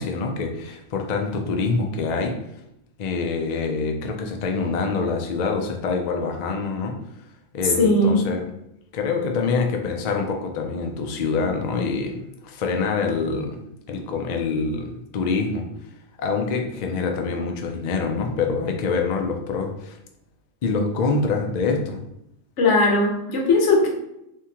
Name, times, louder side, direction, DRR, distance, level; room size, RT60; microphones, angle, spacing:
voice 1, 0.0-2.4 3.0-7.0 7.5-8.4 8.9-13.6 13.9-15.7 16.2-20.0 20.6-22.0, left 4 dB, 90° left, 3 dB, 0.3 m, -25 dB
voice 2, 7.8-8.2 22.6-23.9, left 2 dB, 65° left, 0 dB, 1.1 m, -18 dB
3.5 x 2.7 x 2.8 m, 0.80 s
omnidirectional pair, 1.4 m